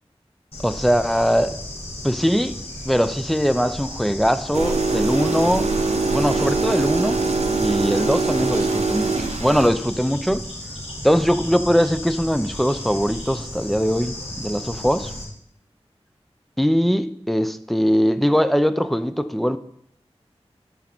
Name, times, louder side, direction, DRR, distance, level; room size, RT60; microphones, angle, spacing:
Bird / Insect, 0.5-15.2, left 1 dB, 65° left, 3.8 m, -34 dB
voice 1, 0.6-1.6 2.0-2.6 2.9-5.7 6.1-7.2 7.6-10.4 11.0-15.1 16.6-19.6, equal, ahead, 0.6 m, -21 dB
sound 1, 4.5-9.7, right 3 dB, 90° right, 0.8 m, -22 dB
11.0 x 5.4 x 4.5 m
wide cardioid pair, 45°, 11 cm